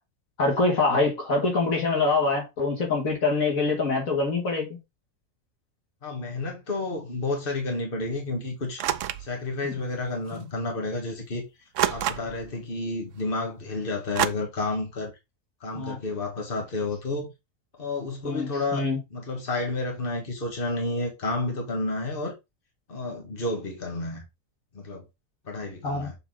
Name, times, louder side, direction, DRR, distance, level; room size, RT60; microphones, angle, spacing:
voice 1, 0.4-4.8 9.6-9.7 10.3-10.5 15.7-16.0 18.2-19.0 25.8-26.1, left 3 dB, 80° left, 2.5 m, -25 dB
voice 2, 6.0-8.8 9.2-11.4 11.9-15.1 15.6-17.3 17.8-22.3 22.9-24.2 24.7-25.0 25.5-26.2, left 2 dB, 40° left, 1.9 m, -31 dB
sound 1, 8.8-9.3 10.4-10.5 11.7-12.5 14.2-14.3, right 11 dB, 70° right, 0.9 m, -26 dB
7.1 x 3.9 x 3.8 m
omnidirectional pair, 1.4 m